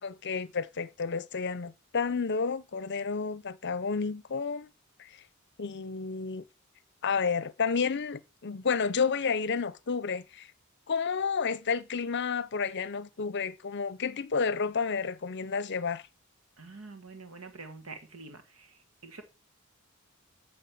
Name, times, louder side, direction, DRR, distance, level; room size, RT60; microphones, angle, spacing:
voice 1, 0.0-4.7 5.6-6.4 7.0-10.5 10.9-16.0, left 5 dB, 55° left, 0.7 m, -31 dB
voice 2, 16.6-19.2, right 3 dB, 75° right, 1.6 m, -46 dB
9.1 x 6.6 x 8.6 m
head